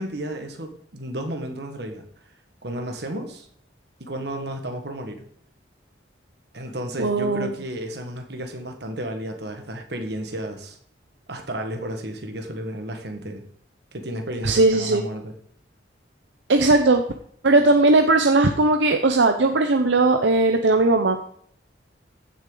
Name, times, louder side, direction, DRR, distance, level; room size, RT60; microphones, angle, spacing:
voice 1, 0.0-2.0 2.6-3.4 4.0-5.2 6.5-10.8 11.3-13.4 13.9-15.3, right 1 dB, 60° right, 4 dB, 1.5 m, -32 dB
voice 2, 7.0-7.5 14.4-15.0 16.5-17.0 17.4-21.2, right 2 dB, 75° right, 5 dB, 0.8 m, -18 dB
15.0 x 6.5 x 3.9 m, 0.63 s
head